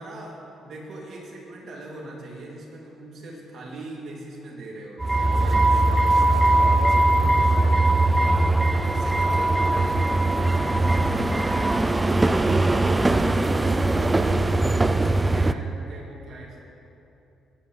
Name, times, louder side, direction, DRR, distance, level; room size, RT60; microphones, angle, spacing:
voice 1, 0.0-8.5 8.8-13.2 13.5-16.6, right 2 dB, 65° right, -3 dB, 2.8 m, -40 dB
sound 1, 5.0-15.5, right 2 dB, 15° right, 0.4 m, -20 dB
17.5 x 9.4 x 3.3 m, 2.8 s
cardioid pair, 90°, 0 cm